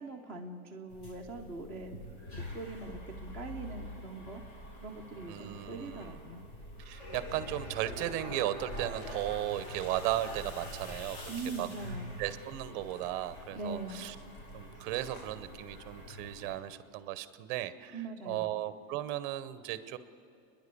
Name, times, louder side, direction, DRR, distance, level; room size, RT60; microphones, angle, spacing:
voice 1, 0.0-4.4 4.8-6.4 11.3-12.1 13.5-14.1 17.9-18.5, right 3 dB, 5° left, 2 dB, 0.6 m, -42 dB
sound 1, 0.9-16.6, equal, 45° left, 5.0 m, -45 dB
voice 2, 5.3-6.2 6.9-11.3 11.6-11.7 12.2-14.1 14.5-18.0 18.3-20.0, right 13 dB, 35° right, 13 dB, 0.7 m, -36 dB
sound 2, 7.1-16.5, left 2 dB, 90° left, 4.1 m, -59 dB
29.0 x 10.5 x 8.4 m, 2.7 s
supercardioid pair, 170°, 43 cm